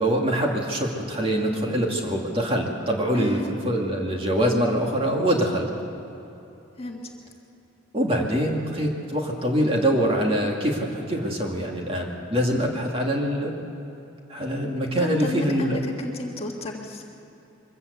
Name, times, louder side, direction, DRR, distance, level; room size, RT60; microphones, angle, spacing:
voice 1, 0.0-5.7 7.9-13.6 14.3-15.8, equal, 25° right, 0 dB, 2.3 m, -24 dB
voice 2, 3.1-3.5 6.8-7.1 15.0-17.0, left 1 dB, 30° left, 1 dB, 1.6 m, -32 dB
23.0 x 15.0 x 8.2 m, 2.9 s
head